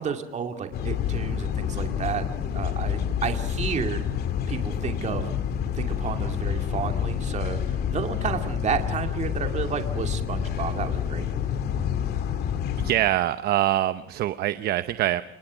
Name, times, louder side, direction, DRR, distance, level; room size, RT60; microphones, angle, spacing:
voice 1, 0.0-2.2 2.5-4.0 4.5-5.3 5.7-11.5, right 7 dB, 45° right, 5 dB, 2.4 m, -31 dB
sound 1, 0.7-12.9, left 8 dB, 70° left, 2.3 m, -28 dB
voice 2, 12.8-15.2, right 13 dB, 70° right, 13 dB, 0.8 m, -24 dB
29.5 x 19.5 x 6.3 m, 0.74 s
cardioid pair, 110°, 17 cm